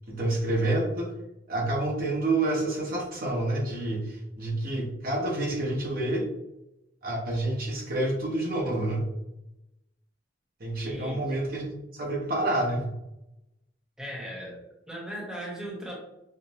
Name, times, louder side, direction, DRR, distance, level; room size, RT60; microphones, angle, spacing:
voice 1, 0.1-1.1 1.5-6.3 7.0-9.0 10.6-12.9, right 2 dB, 50° right, -2 dB, 0.9 m, -28 dB
voice 2, 10.8-11.2 14.0-14.6 14.9-16.0, equal, 5° right, -4 dB, 1.0 m, -37 dB
5.7 x 2.0 x 2.9 m, 0.89 s
head